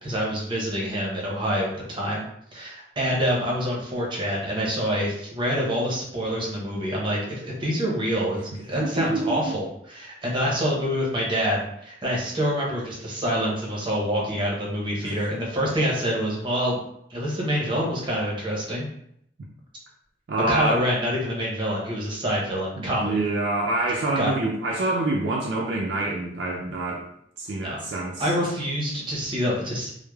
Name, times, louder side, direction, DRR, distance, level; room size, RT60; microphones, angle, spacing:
voice 1, 0.0-16.8 17.1-18.8 20.5-23.2 24.2-24.3 27.6-27.8 28.2-29.9, equal, 30° right, -3 dB, 0.7 m, -26 dB
voice 2, 8.8-9.4 15.0-15.1 20.3-20.9 22.8-27.0 27.4-28.3, right 2 dB, 80° right, -2 dB, 0.4 m, -26 dB
3.1 x 2.0 x 2.2 m, 0.72 s
head